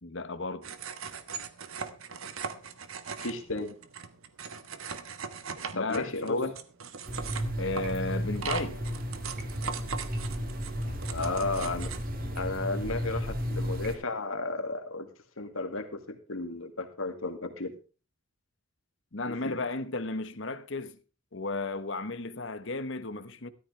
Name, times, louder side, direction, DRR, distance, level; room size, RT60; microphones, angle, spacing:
voice 1, 0.0-0.7 5.7-6.4 7.6-8.8 19.1-21.0 21.3-23.5, left 3 dB, 60° left, 1.1 m, -34 dB
sound 1, 0.6-12.0, right 6 dB, 85° right, 1.3 m, -40 dB
voice 2, 3.2-3.8 5.6-6.5 11.1-11.9 12.4-15.1 15.4-17.7 19.2-19.6, left 3 dB, 80° left, 2.3 m, -33 dB
sound 2, 7.1-13.9, equal, 45° right, 2.1 m, -34 dB
13.5 x 13.5 x 3.4 m
head